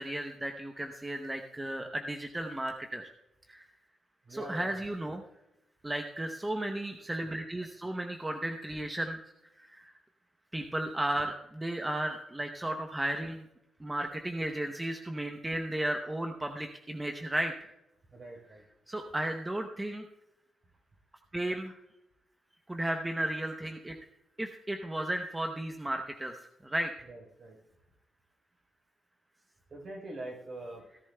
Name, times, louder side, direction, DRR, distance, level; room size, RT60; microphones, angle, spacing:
voice 1, 0.0-3.1 3.5-3.7 4.3-5.2 5.8-9.2 9.6-9.9 10.5-13.5 13.8-17.7 18.9-20.0 21.3-21.8 22.7-24.0 24.4-26.3 26.6-26.9, right 1 dB, 15° right, 4 dB, 0.7 m, -34 dB
voice 2, 4.2-4.8 18.1-18.6 27.0-27.6 29.7-30.9, right 1 dB, 45° right, 1 dB, 3.6 m, -44 dB
17.0 x 11.0 x 2.2 m, 0.91 s
cardioid pair, 115°, 0 cm